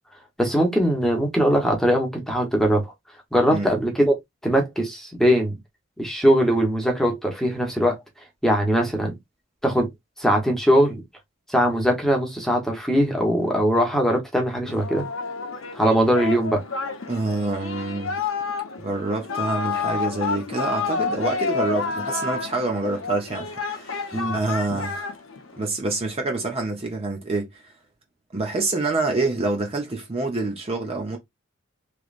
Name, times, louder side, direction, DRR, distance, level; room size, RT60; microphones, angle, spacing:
voice 1, 0.4-2.9 3.3-4.1 4.4-5.6 6.0-8.0 8.4-9.2 9.6-9.9 10.2-11.0 11.5-15.0 15.7-16.6 24.1-24.4, equal, ahead, 1.0 m, -21 dB
Singing, 14.7-25.7, left 5 dB, 75° left, 0.7 m, -30 dB
voice 2, 17.1-18.1 18.8-25.1 25.6-27.5 28.3-31.2, right 3 dB, 30° right, 0.8 m, -27 dB
3.3 x 3.1 x 2.5 m
head